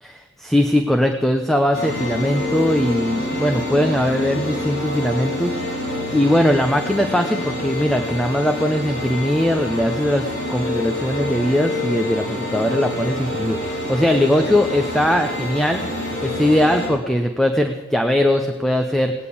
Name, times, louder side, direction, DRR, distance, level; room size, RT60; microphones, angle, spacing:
voice 1, 0.0-5.8 6.1-16.0 16.2-19.1, left 1 dB, ahead, 4 dB, 0.7 m, -20 dB
sound 1, 1.7-16.9, left 1 dB, 80° left, 6.6 m, -27 dB
17.5 x 9.0 x 8.5 m, 1.3 s
head